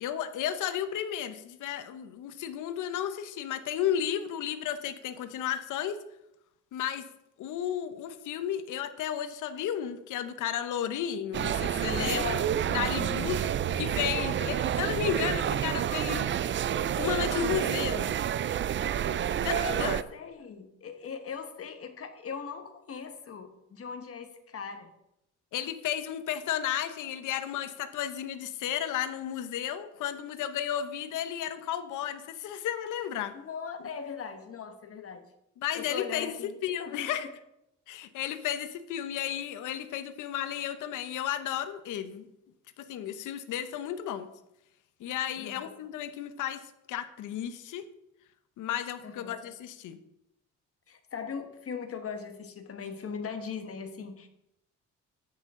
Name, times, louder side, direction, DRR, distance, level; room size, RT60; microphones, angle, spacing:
voice 1, 0.0-6.0 6.7-7.1 7.4-12.4 12.7-13.5 13.8-16.3 16.6-18.1 19.4-20.0 25.5-33.3 35.6-37.3 37.9-42.3 42.8-44.3 45.0-46.6 46.9-47.9 48.6-50.0, left 10 dB, 80° left, 11 dB, 0.9 m, -33 dB
sound 1, 11.3-20.0, right 9 dB, 40° right, 0.4 m, -29 dB
voice 2, 11.9-12.6 13.2-13.4 14.1-14.7 19.4-24.9 33.3-35.3 35.7-37.3 45.4-45.7 49.0-49.4 50.9-54.3, left 6 dB, 50° left, 7 dB, 1.4 m, -40 dB
10.5 x 8.6 x 3.7 m, 0.84 s
cardioid pair, 90°, 30 cm